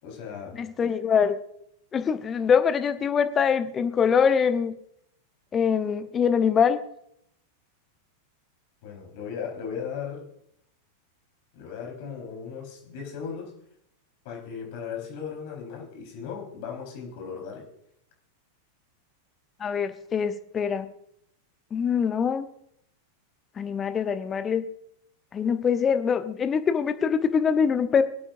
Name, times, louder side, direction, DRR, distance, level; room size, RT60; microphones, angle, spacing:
voice 1, 0.0-0.6 8.8-10.3 11.5-13.5 14.2-17.7, left 7 dB, 45° left, 1 dB, 4.4 m, -37 dB
voice 2, 0.6-1.4 1.9-4.7 5.5-6.8 19.6-20.9 21.7-22.5 23.6-24.6 25.3-28.0, left 6 dB, 25° left, 10 dB, 0.9 m, -23 dB
23.5 x 8.6 x 2.6 m, 0.72 s
figure-of-eight pair, 90°, 0 cm